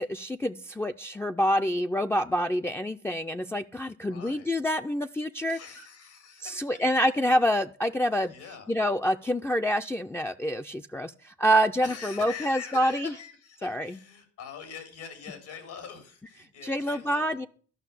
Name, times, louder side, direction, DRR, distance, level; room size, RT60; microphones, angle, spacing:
voice 1, 0.0-5.6 6.4-8.3 8.7-13.1 13.6-14.0 16.6-17.5, equal, 10° left, 5 dB, 0.4 m, -27 dB
voice 2, 4.1-4.6 5.5-6.7 8.3-8.8 11.8-17.4, left 7 dB, 85° left, 7 dB, 3.5 m, -43 dB
12.0 x 5.8 x 8.3 m, 0.43 s
cardioid pair, 90°, 30 cm